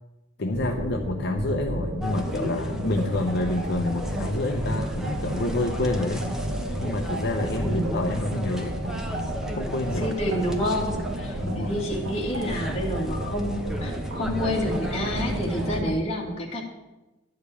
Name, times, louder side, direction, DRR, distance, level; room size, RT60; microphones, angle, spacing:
voice 1, 0.4-6.3 6.8-8.8 9.5-10.1 11.4-11.8, left 2 dB, 55° left, 2 dB, 0.8 m, -28 dB
sound 1, 0.5-15.9, right 1 dB, 75° right, 1.3 m, -31 dB
sound 2, 2.0-15.8, equal, 5° right, 0.9 m, -38 dB
voice 2, 7.6-8.0 10.0-16.6, equal, 30° left, -1 dB, 2.1 m, -29 dB
11.5 x 5.1 x 8.3 m, 1.0 s
head